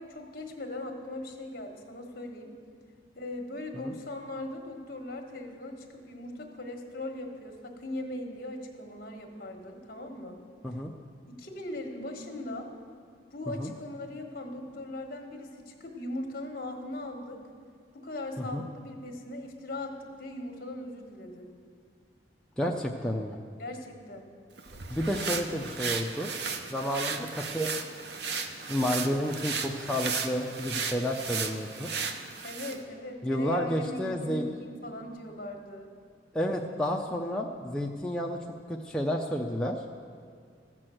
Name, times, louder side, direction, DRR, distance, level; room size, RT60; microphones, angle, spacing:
voice 1, 0.0-2.5 3.1-10.4 11.3-12.7 13.3-17.4 17.9-21.5 23.6-24.3 32.4-35.9, left 1 dB, 50° left, 3 dB, 1.3 m, -39 dB
voice 2, 22.6-23.4 24.9-26.3 26.7-27.7 28.7-31.9 33.2-34.5 36.3-38.4 38.7-39.8, equal, 5° left, -1 dB, 0.4 m, -30 dB
sound 1, 24.6-32.8, right 5 dB, 65° right, 0.7 m, -35 dB
14.0 x 6.1 x 7.7 m, 2.2 s
head